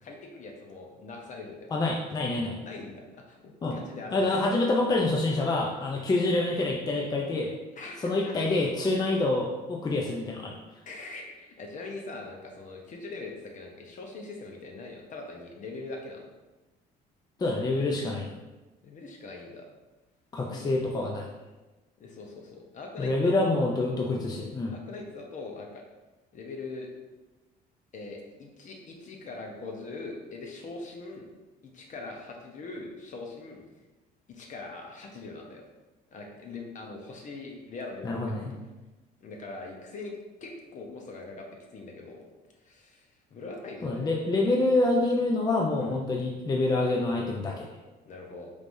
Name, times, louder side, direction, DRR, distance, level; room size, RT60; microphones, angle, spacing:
voice 1, 0.0-1.7 2.6-4.4 7.8-8.3 10.9-16.3 18.8-19.7 20.4-20.9 22.0-23.7 24.7-25.8 26.3-26.9 27.9-31.2 31.6-33.6 34.3-35.6 36.1-38.4 39.2-40.1 40.4-42.3 42.6-43.0 43.3-44.1 45.8-46.0 48.0-48.5, left 3 dB, 50° left, 1 dB, 0.9 m, -42 dB
voice 2, 1.7-2.6 3.6-3.8 4.1-7.5 8.0-10.5 17.4-18.3 20.3-21.3 23.0-24.8 38.0-38.5 43.8-47.7, left 2 dB, 25° left, 0 dB, 0.5 m, -26 dB
5.1 x 3.3 x 2.6 m, 1.1 s
cardioid pair, 110°, 17 cm